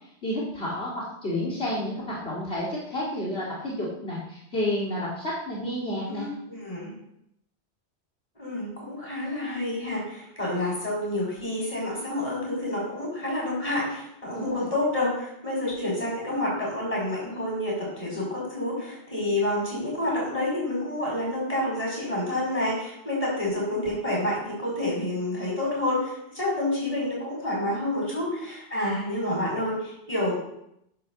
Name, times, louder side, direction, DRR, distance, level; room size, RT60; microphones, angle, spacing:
voice 1, 0.2-6.3 14.3-14.7, left 1 dB, 60° left, -6 dB, 2.9 m, -30 dB
voice 2, 6.1-6.9 8.4-30.3, left 1 dB, 30° left, -4 dB, 6.3 m, -29 dB
13.5 x 10.5 x 4.2 m, 0.77 s
omnidirectional pair, 1.2 m